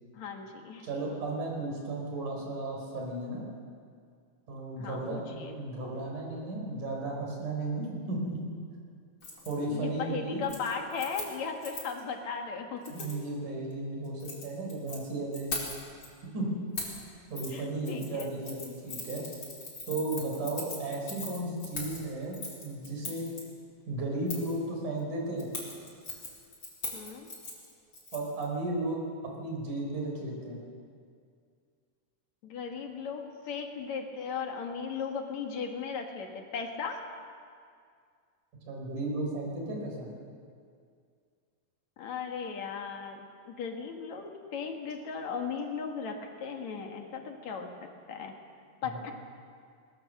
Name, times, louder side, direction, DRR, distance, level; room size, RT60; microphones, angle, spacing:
voice 1, 0.1-0.9 4.8-5.5 9.7-13.1 17.5-18.3 26.9-27.3 32.4-37.0 42.0-48.3 48.8-49.1, left 5 dB, 65° left, 3 dB, 3.0 m, -37 dB
voice 2, 0.8-3.5 4.5-8.5 9.5-10.4 12.9-15.5 16.3-16.7 17.3-19.2 19.9-23.4 23.9-25.5 28.1-29.0 29.4-30.6 38.7-40.1, right 2 dB, 80° right, -1 dB, 6.0 m, -34 dB
Keys jangling, 9.2-9.5 9.9-10.2 10.4-12.0 12.8-13.2 14.0-15.0 15.3-16.1 16.8-17.0 17.4-17.5 17.8-23.4 24.3-24.6 25.4-28.4 28.7-28.8, left 2 dB, 35° left, 5.1 m, -40 dB
22.5 x 20.0 x 6.6 m, 2.2 s
omnidirectional pair, 3.5 m